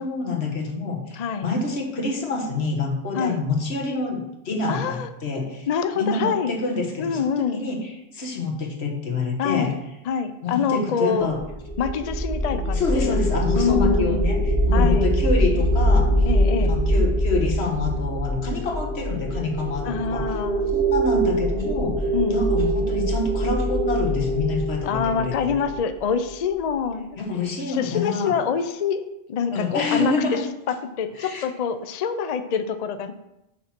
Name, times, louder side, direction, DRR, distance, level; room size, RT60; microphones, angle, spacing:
voice 1, 0.0-5.7 5.9-9.7 10.4-11.4 12.7-16.3 16.6-20.3 20.7-25.6 27.2-28.3 29.5-30.4 31.2-31.4, left 3 dB, 85° left, 1 dB, 1.5 m, -27 dB
voice 2, 1.2-1.5 3.1-3.4 4.7-5.1 5.7-6.5 7.0-7.6 9.4-9.7 10.0-11.3 11.8-13.1 13.5-14.3 14.7-15.1 16.3-16.8 19.8-20.7 22.1-22.4 24.9-27.1 27.7-29.0 29.3-30.4 30.7-33.1, left 6 dB, 50° left, 10 dB, 0.5 m, -25 dB
sound 1, 11.3-26.5, equal, 65° right, 1.6 m, -23 dB
6.7 x 4.3 x 5.8 m, 0.88 s
omnidirectional pair, 1.1 m